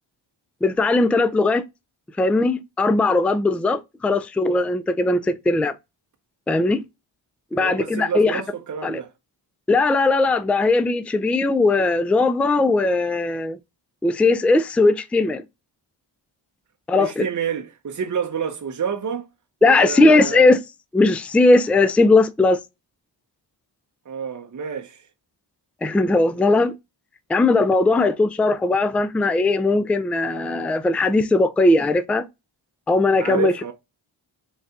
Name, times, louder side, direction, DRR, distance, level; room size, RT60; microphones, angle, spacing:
voice 1, 0.6-1.6 2.2-5.7 6.5-6.8 7.5-8.4 8.8-9.0 9.7-13.6 14.0-15.4 16.9-17.3 19.6-20.6 20.9-22.6 25.8-26.7 27.3-32.2 32.9-33.7, left 2 dB, 5° left, 0.3 m, -19 dB
voice 2, 7.5-9.1 17.0-19.3 19.6-20.5 24.1-25.1 27.9-28.1 33.2-33.7, right 7 dB, 40° right, 0.7 m, -28 dB
4.0 x 2.3 x 3.6 m
cardioid pair, 55°, 49 cm